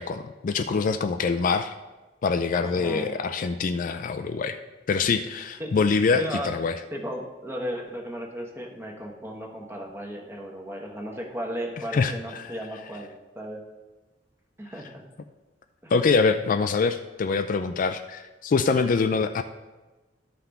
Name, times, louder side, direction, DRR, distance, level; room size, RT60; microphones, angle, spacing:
voice 1, 0.0-1.7 2.2-4.6 4.9-6.7 11.9-12.1 15.9-19.4, left 4 dB, 45° left, 9 dB, 0.4 m, -24 dB
voice 2, 2.6-3.2 5.6-5.7 6.1-6.5 6.9-13.6 14.6-15.0 15.8-15.9, equal, 15° right, 1 dB, 1.1 m, -35 dB
12.5 x 5.8 x 3.5 m, 1.1 s
head